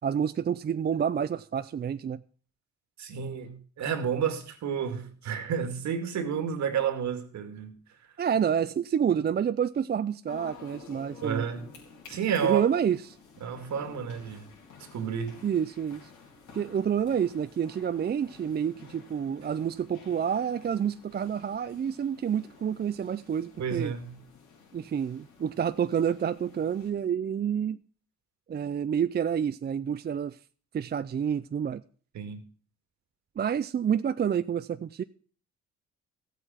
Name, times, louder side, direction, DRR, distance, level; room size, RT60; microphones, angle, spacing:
voice 1, 0.0-2.2 8.2-11.5 12.4-13.0 15.4-16.1 16.5-23.9 24.7-27.8 28.5-30.4 30.7-31.8 33.4-35.0, right 8 dB, 35° right, 0.5 m, -28 dB
voice 2, 3.0-7.8 11.2-11.7 12.1-12.6 13.4-14.5 14.9-15.4 23.6-24.2 32.1-32.4, right 7 dB, 65° right, 2.2 m, -31 dB
sound 1, 10.3-26.9, left 5 dB, 75° left, 4.1 m, -52 dB
14.0 x 8.1 x 5.8 m
cardioid pair, 90°, 30 cm